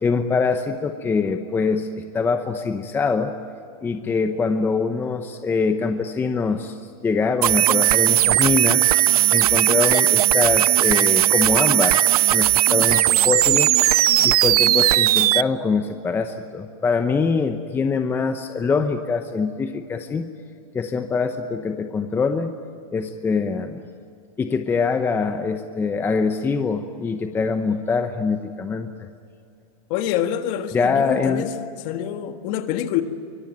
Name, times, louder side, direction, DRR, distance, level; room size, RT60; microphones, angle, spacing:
voice 1, 0.0-3.3 3.8-6.8 7.0-8.9 9.3-12.0 12.3-13.8 14.2-20.3 20.7-22.5 22.9-23.8 24.4-28.9 30.7-31.5, left 4 dB, 10° left, 7 dB, 0.9 m, -23 dB
sound 1, 7.4-15.4, right 15 dB, 75° right, 0.6 m, -17 dB
voice 2, 29.9-31.5 31.8-33.0, left 11 dB, 45° left, 7 dB, 1.8 m, -26 dB
24.5 x 22.5 x 9.4 m, 2.5 s
supercardioid pair, 155°, 19 cm